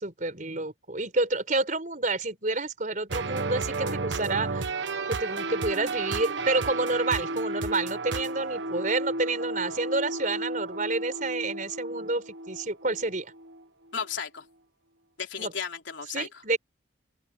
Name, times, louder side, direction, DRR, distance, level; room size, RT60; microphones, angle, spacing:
voice 1, 0.0-4.8 5.1-13.3 15.4-15.5 16.1-16.6, right 2 dB, 45° right, 4.6 m, -29 dB
sound 1, 3.1-13.6, right 3 dB, 70° right, 1.2 m, -33 dB
voice 2, 4.5-5.1 13.9-14.5 15.2-16.3, left 6 dB, 75° left, 3.5 m, -35 dB
open air
head